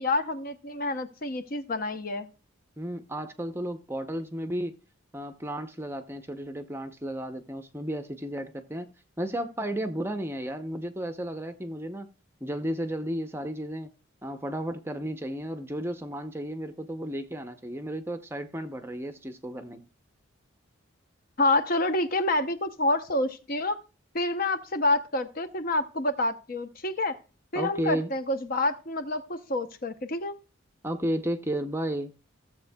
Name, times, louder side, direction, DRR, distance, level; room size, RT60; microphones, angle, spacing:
voice 1, 0.0-2.3 21.4-23.8 24.1-27.2 27.5-30.4, left 2 dB, 45° left, 0.7 m, -28 dB
voice 2, 2.8-4.7 5.1-8.9 9.2-12.1 12.4-13.9 14.2-19.8 27.5-28.1 30.8-32.1, right 1 dB, 10° right, 0.6 m, -33 dB
15.5 x 7.3 x 2.2 m
head